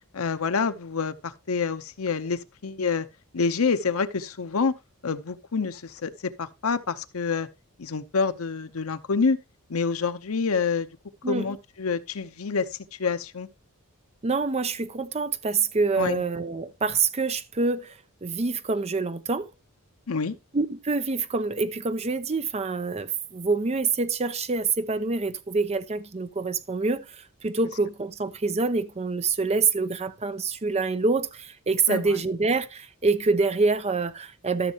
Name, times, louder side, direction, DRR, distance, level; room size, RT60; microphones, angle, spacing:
voice 1, 0.1-3.1 3.3-4.8 5.0-7.5 7.8-9.4 9.7-10.9 11.3-12.7 13.0-13.5 16.0-16.2 20.1-20.4 31.9-32.1, left 5 dB, 80° left, 0.7 m, -27 dB
voice 2, 14.2-19.5 20.5-34.7, right 4 dB, 30° right, 0.6 m, -26 dB
14.0 x 6.5 x 2.8 m
head